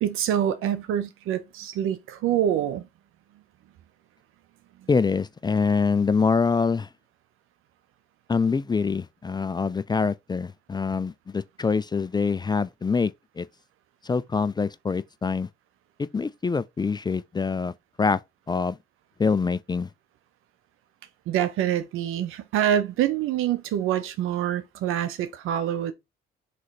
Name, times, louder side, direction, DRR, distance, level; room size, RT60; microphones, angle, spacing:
voice 1, 0.0-2.8 21.3-25.9, right 10 dB, 80° right, 0.7 m, -26 dB
voice 2, 4.9-6.9 8.3-13.5 14.0-15.5 16.0-18.2 18.5-18.8 19.2-19.9, left 5 dB, 20° left, 0.3 m, -25 dB
3.8 x 3.1 x 4.1 m
supercardioid pair, 65°, 21 cm